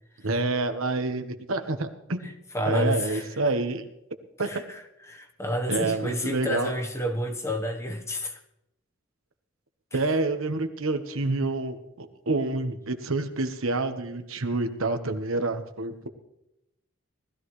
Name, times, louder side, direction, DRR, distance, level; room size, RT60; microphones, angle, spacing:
voice 1, 0.2-2.2 2.7-3.8 4.4-4.5 5.7-6.7 9.9-16.1, right 2 dB, 80° right, 8 dB, 1.2 m, -28 dB
voice 2, 2.2-3.3 4.4-8.4 9.9-10.0, equal, 15° left, 4 dB, 1.1 m, -30 dB
19.5 x 14.0 x 3.2 m, 0.85 s
head